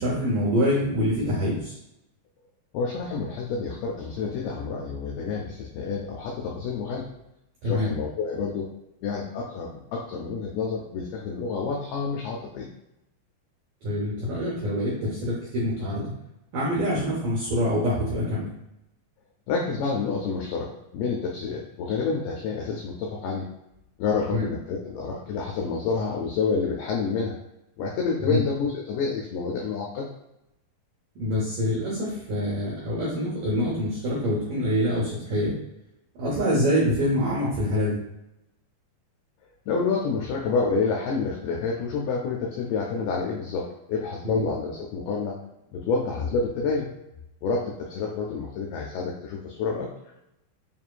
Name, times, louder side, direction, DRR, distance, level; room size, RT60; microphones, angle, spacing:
voice 1, 0.0-1.8 7.6-7.9 13.8-16.1 16.5-18.5 24.3-24.4 28.2-28.4 31.2-35.5 36.2-38.0 44.2-44.4, equal, 75° right, -7 dB, 1.9 m, -25 dB
voice 2, 2.7-7.1 7.6-8.7 9.0-12.7 19.5-20.7 20.9-23.5 24.0-27.3 27.8-30.1 39.7-45.4 45.7-46.9 47.4-49.9, left 4 dB, 90° left, -1 dB, 2.2 m, -28 dB
7.3 x 2.5 x 2.3 m, 0.87 s
omnidirectional pair, 5.1 m